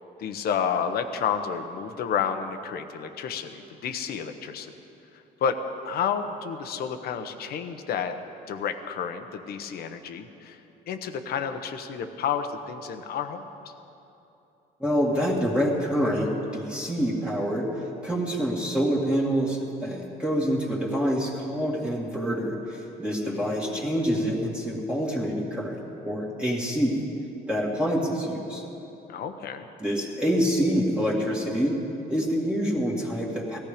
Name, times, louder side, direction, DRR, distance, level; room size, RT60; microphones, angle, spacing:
voice 1, 0.2-4.7 5.4-5.6 5.8-8.1 8.5-10.6 10.9-13.4 23.2-23.9 29.1-29.7, left 7 dB, 65° left, 7 dB, 1.1 m, -30 dB
voice 2, 14.8-17.7 18.0-27.1 27.5-28.6 29.8-31.8 32.1-33.6, equal, 5° right, -4 dB, 2.2 m, -26 dB
18.0 x 14.0 x 5.1 m, 2.9 s
cardioid pair, 110°, 17 cm